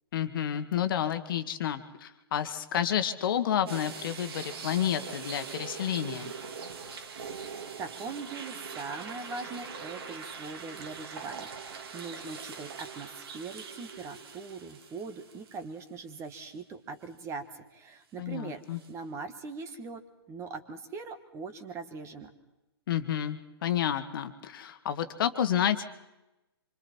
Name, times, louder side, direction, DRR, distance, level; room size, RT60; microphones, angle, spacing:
voice 1, 0.1-6.3 18.2-18.8 22.9-25.8, left 10 dB, 55° left, 9 dB, 1.6 m, -30 dB
sound 1, 3.7-15.9 16.3-16.4 18.7-18.9, right 5 dB, 65° right, 2.6 m, -42 dB
voice 2, 7.4-18.6 18.9-20.0 20.3-22.3, right 4 dB, 20° right, 10 dB, 1.6 m, -41 dB
26.0 x 24.5 x 4.5 m, 0.97 s
hypercardioid pair, 135°, 14 cm